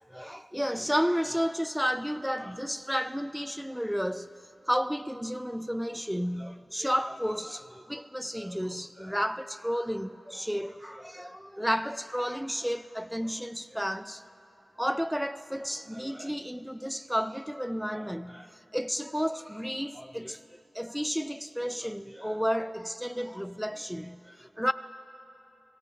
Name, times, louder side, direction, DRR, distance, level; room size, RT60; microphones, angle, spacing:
voice 1, 0.0-4.3 4.7-14.2 14.8-20.4 20.7-24.7, equal, ahead, 0.3 m, -32 dB
23.0 x 17.5 x 3.4 m
wide cardioid pair, 70°, 0 cm